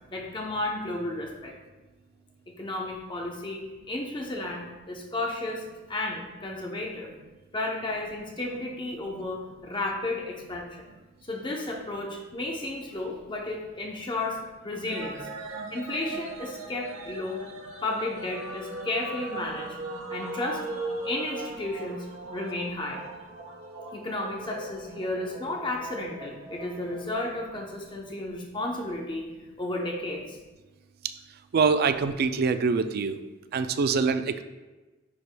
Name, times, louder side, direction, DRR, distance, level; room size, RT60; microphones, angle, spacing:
voice 1, 0.1-1.5 2.6-7.1 7.5-10.9 11.3-14.4 14.6-15.3 15.7-17.4 17.8-19.8 20.1-23.0 23.9-29.2 29.6-30.4, left 2 dB, 25° left, -1 dB, 0.7 m, -33 dB
sound 1, 14.9-27.1, right 2 dB, 85° right, 1.1 m, -39 dB
voice 2, 31.5-33.2 33.5-34.4, right 5 dB, 50° right, 10 dB, 0.3 m, -24 dB
9.5 x 4.7 x 2.2 m, 1.2 s
head